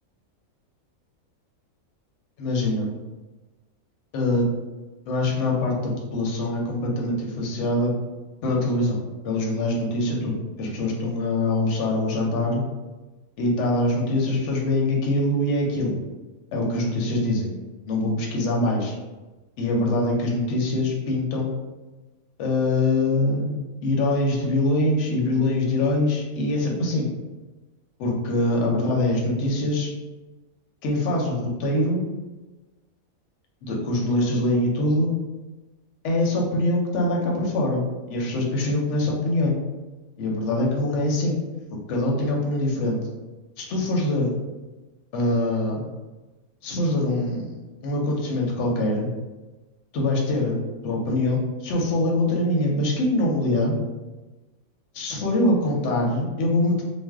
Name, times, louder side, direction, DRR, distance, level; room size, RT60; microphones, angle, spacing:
voice 1, 2.4-2.9 4.1-4.5 5.1-7.9 8.4-9.0 9.2-12.6 13.4-15.9 16.5-17.5 17.9-18.9 19.6-21.5 22.4-23.5 23.8-27.1 28.0-29.9 30.8-32.0 33.6-35.1 36.0-37.8 38.1-39.6 40.2-41.4 41.9-43.0 43.6-44.3 45.1-45.8 46.6-47.6 47.8-49.1 49.9-50.5 50.8-53.7 54.9-56.8, left 1 dB, 65° left, -1 dB, 0.9 m, -23 dB
2.5 x 2.1 x 3.4 m, 1.2 s
omnidirectional pair, 1.5 m